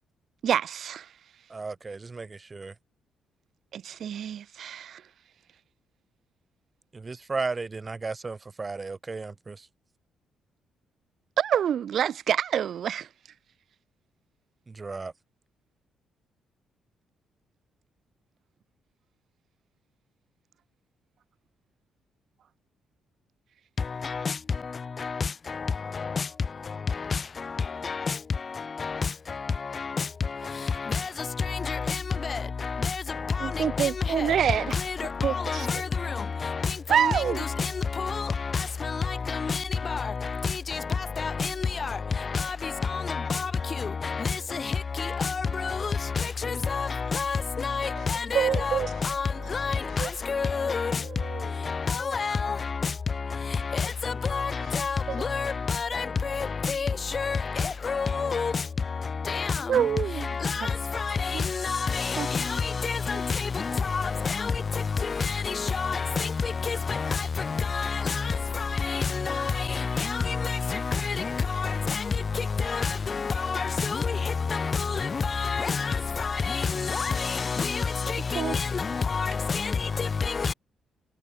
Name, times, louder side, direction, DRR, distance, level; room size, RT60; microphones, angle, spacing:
voice 1, 0.4-1.1 3.7-5.0 11.4-13.1 33.4-34.7 35.2-35.7 36.9-37.4 48.0-48.1 48.3-48.9 49.4-49.5 50.0-50.1 51.0-51.5 55.1-55.2 59.7-60.3 60.6-60.7 61.3-61.4 62.2-62.3 78.3-78.6, right 9 dB, 60° right, 3.6 m, -27 dB
voice 2, 1.5-2.7 6.9-9.7 14.7-15.1, right 4 dB, 30° right, 3.3 m, -34 dB
voice 3, 23.8-80.5, left 5 dB, 35° left, 3.2 m, -29 dB
cardioid pair, 90°, 0 cm